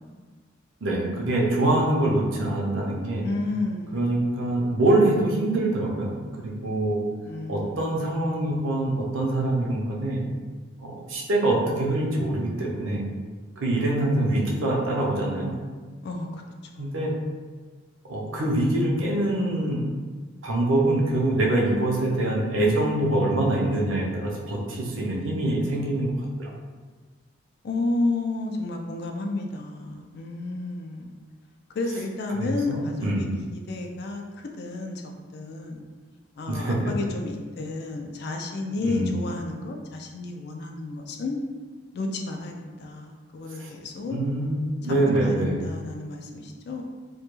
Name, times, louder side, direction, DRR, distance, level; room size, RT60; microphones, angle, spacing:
voice 1, 0.8-3.3 3.9-6.1 6.4-7.0 7.5-10.2 10.8-13.1 13.6-15.5 16.8-17.1 18.1-19.8 20.4-26.1 26.4-26.5 32.4-33.2 36.5-36.9 38.8-39.1 43.6-43.7 44.1-45.6, right 1 dB, 85° right, -3 dB, 0.5 m, -24 dB
voice 2, 3.2-4.2 7.3-7.8 16.0-16.4 16.7-17.0 27.6-31.1 31.7-33.3 33.5-35.8 36.4-41.4 41.9-44.2 44.8-44.9 45.2-46.8, left 2 dB, 55° left, 2 dB, 0.3 m, -31 dB
2.2 x 2.2 x 3.0 m, 1.4 s
head